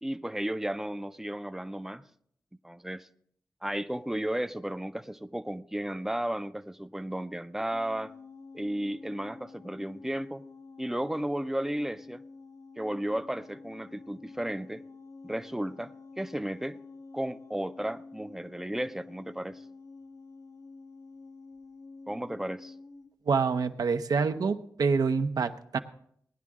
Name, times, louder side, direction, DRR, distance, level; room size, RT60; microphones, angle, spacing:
voice 1, 0.0-2.0 2.6-3.1 3.6-8.1 8.5-10.4 10.8-12.2 12.8-14.8 15.2-16.8 17.1-19.6 22.1-22.7, right 1 dB, 5° right, 0.5 m, -34 dB
sound 1, 7.7-23.1, left 3 dB, 60° left, 1.4 m, -49 dB
voice 2, 23.3-25.8, right 5 dB, 75° right, 0.7 m, -27 dB
17.5 x 10.5 x 3.6 m
wide cardioid pair, 100°, 7 cm